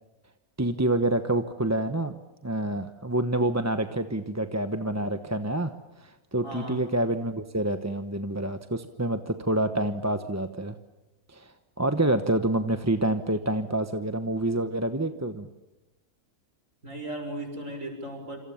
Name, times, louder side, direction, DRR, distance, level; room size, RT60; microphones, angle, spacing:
voice 1, 0.6-2.2 2.4-5.7 6.0-10.8 11.3-15.5, right 1 dB, 15° right, 8 dB, 0.9 m, -27 dB
voice 2, 6.4-6.8 16.8-18.4, right 1 dB, 65° right, 5 dB, 6.7 m, -36 dB
28.0 x 27.0 x 7.2 m, 1.0 s
omnidirectional pair, 1.5 m